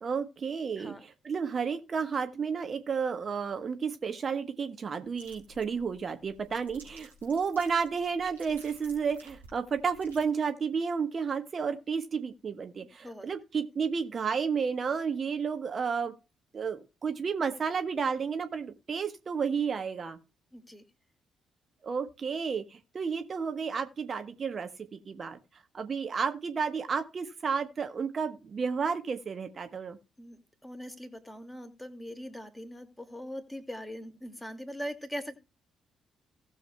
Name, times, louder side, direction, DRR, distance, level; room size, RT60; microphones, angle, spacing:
voice 1, 0.0-16.1 16.5-20.2 21.8-25.4 25.7-30.0, right 6 dB, 40° right, 8 dB, 1.1 m, -32 dB
sound 1, 5.0-10.2, right 1 dB, 85° right, 3.9 m, -54 dB
voice 2, 20.5-20.8 30.2-35.4, equal, 5° left, 6 dB, 2.2 m, -41 dB
18.0 x 6.9 x 2.2 m, 0.29 s
figure-of-eight pair, 40°, 0 cm